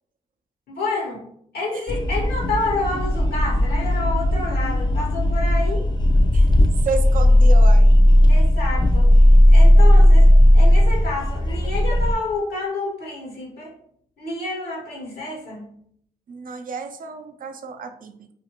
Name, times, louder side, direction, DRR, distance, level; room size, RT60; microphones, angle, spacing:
voice 1, 0.7-1.2 1.5-5.8 8.3-9.1 9.5-10.3 10.5-13.7 14.2-15.7, left 2 dB, 80° left, -2 dB, 1.0 m, -29 dB
sound 1, 1.9-12.1, left 1 dB, 30° left, 0.4 m, -15 dB
voice 2, 6.8-7.9 16.3-18.3, right 4 dB, 60° right, 7 dB, 0.4 m, -31 dB
2.5 x 2.4 x 2.9 m, 0.67 s
cardioid pair, 60°, 16 cm